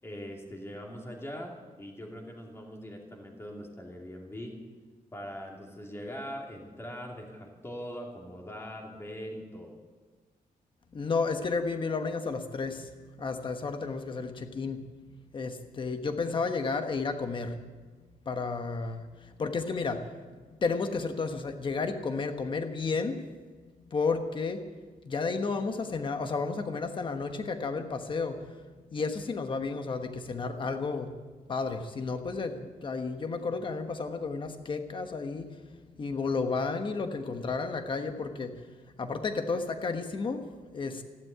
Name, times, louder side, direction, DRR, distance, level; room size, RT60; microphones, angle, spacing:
voice 1, 0.0-4.6 5.1-9.7, equal, 15° left, 0 dB, 2.5 m, -41 dB
voice 2, 10.9-14.9 15.3-17.6 18.2-20.1 20.6-23.2 23.8-24.8 25.0-28.6 28.9-31.1 31.5-38.6 39.0-41.0, left 4 dB, 35° left, 7 dB, 1.2 m, -32 dB
15.0 x 11.5 x 8.1 m, 1.4 s
wide cardioid pair, 175°, 15 cm